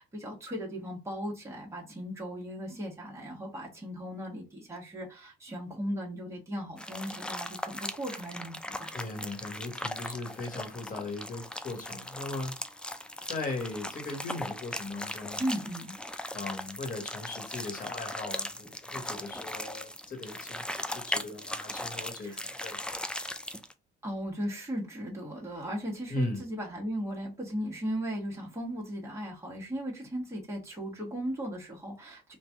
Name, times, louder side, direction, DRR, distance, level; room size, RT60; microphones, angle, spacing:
voice 1, 0.0-9.0 15.4-15.9 22.2-22.4 24.0-32.4, equal, 15° right, 1.4 m, -37 dB
sound 1, 6.8-23.7, left 1 dB, 5° left, 0.4 m, -38 dB
voice 2, 8.9-12.6 13.2-15.4 16.3-22.8 26.1-26.4, left 2 dB, 45° left, 1.5 m, -38 dB
3.2 x 2.5 x 3.5 m
cardioid pair, 90°, 20 cm